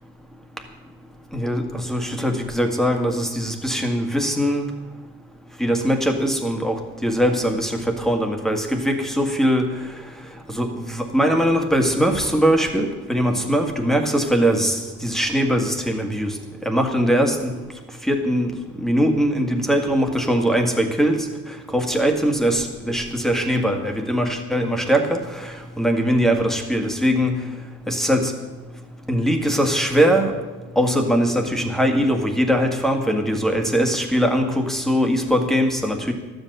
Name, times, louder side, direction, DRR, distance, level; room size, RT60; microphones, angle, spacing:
voice 1, 1.3-4.7 5.6-9.7 10.5-16.4 16.6-17.5 18.0-18.5 18.8-21.3 21.7-27.4 27.9-28.3 29.1-30.3 30.8-36.1, equal, ahead, 4 dB, 1.9 m, -21 dB
12.0 x 8.0 x 8.1 m, 1.2 s
cardioid pair, 90°, 30 cm